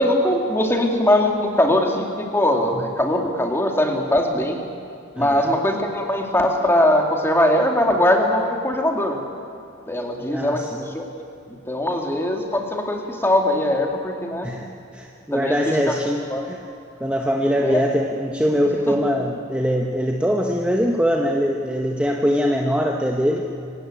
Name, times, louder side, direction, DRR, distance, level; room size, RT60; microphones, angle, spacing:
voice 1, 0.0-4.6 5.2-9.2 9.9-11.1 11.5-14.5 15.3-15.5 15.9-16.0 16.3-16.4 17.6-17.8 18.9-19.0, left 1 dB, 10° left, 2 dB, 2.3 m, -21 dB
voice 2, 5.2-5.5 10.3-10.8 14.4-16.6 17.0-23.5, equal, 5° right, 1 dB, 1.0 m, -22 dB
26.0 x 16.5 x 9.0 m, 2.5 s
head